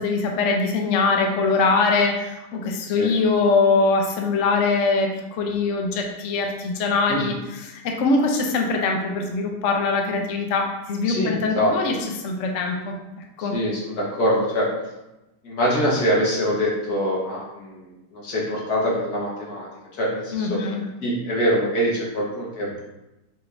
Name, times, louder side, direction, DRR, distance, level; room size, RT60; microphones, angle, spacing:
voice 1, 0.0-11.9 12.2-12.9 13.4-13.5 20.3-20.8, left 3 dB, 75° left, 2 dB, 0.7 m, -22 dB
voice 2, 11.0-11.7 13.4-14.7 15.4-19.7 19.9-20.6 21.0-22.8, equal, 60° left, -4 dB, 1.6 m, -24 dB
5.9 x 3.0 x 2.5 m, 0.98 s
omnidirectional pair, 1.9 m